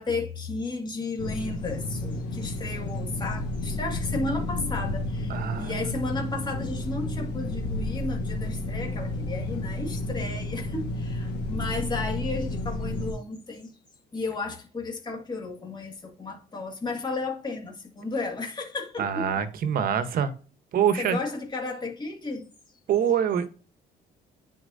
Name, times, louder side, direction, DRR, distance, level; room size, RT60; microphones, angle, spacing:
voice 1, 0.0-13.8 14.1-19.4 21.0-22.5, left 3 dB, 25° left, 2.1 m, -33 dB
sound 1, 1.2-13.1, left 2 dB, 80° left, 1.2 m, -31 dB
voice 2, 5.3-6.0 19.0-20.3 20.7-21.2 22.9-23.5, right 8 dB, 60° right, 1.1 m, -25 dB
9.9 x 4.3 x 2.7 m
cardioid pair, 110°, 17 cm